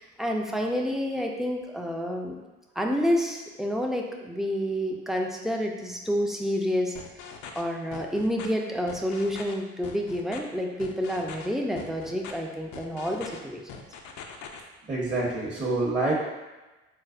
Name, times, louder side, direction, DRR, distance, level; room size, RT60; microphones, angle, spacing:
voice 1, 0.0-2.4 2.8-6.9 7.6-13.8, equal, ahead, 1 dB, 0.4 m, -29 dB
sound 1, 6.9-7.6 7.9-8.5 8.9-9.5 9.8-10.4 10.8-11.5 11.8-12.3 12.7-13.4 13.7-14.6, left 6 dB, 65° left, 0.5 m, -42 dB
voice 2, 14.9-16.1, right 2 dB, 25° right, -5 dB, 0.8 m, -26 dB
4.5 x 2.0 x 2.4 m, 1.1 s
supercardioid pair, 65°, 32 cm